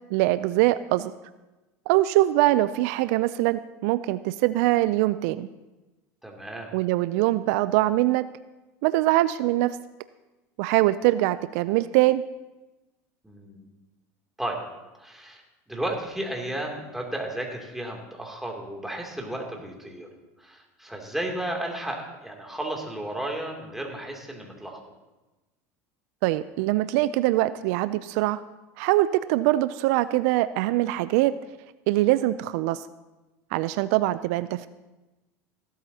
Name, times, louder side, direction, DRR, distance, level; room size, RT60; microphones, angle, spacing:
voice 1, 0.1-1.1 1.9-5.5 6.7-8.3 8.8-9.8 10.6-12.2 26.2-28.4 28.8-31.3 31.9-32.8 33.5-34.7, right 16 dB, 70° right, 15 dB, 0.4 m, -23 dB
voice 2, 6.2-6.7 13.2-13.7 14.4-14.6 15.0-15.4 15.7-20.1 20.4-24.8, right 1 dB, 5° right, 0 dB, 2.7 m, -33 dB
16.5 x 12.5 x 2.8 m, 1.1 s
supercardioid pair, 95°, 8 cm